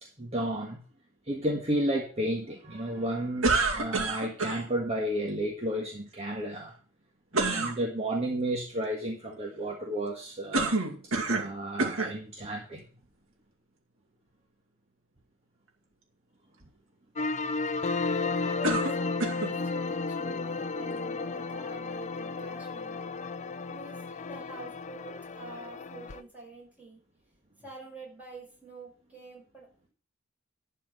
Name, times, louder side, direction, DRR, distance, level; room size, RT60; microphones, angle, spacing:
voice 1, 0.2-0.8 1.3-6.7 7.3-10.8 11.3-12.9, right 1 dB, 30° right, 0 dB, 1.6 m, -32 dB
sound 1, 3.4-4.6 7.3-7.8 10.5-11.5 11.8-12.2 13.0-13.1 18.6-19.5, right 3 dB, 90° right, 2.3 m, -27 dB
sound 2, 17.2-26.2, left 3 dB, 35° left, 0.5 m, -33 dB
voice 2, 18.1-23.0 23.7-27.0 27.6-29.9, right 2 dB, 10° right, -3 dB, 5.8 m, -47 dB
11.5 x 4.5 x 8.0 m, 0.39 s
head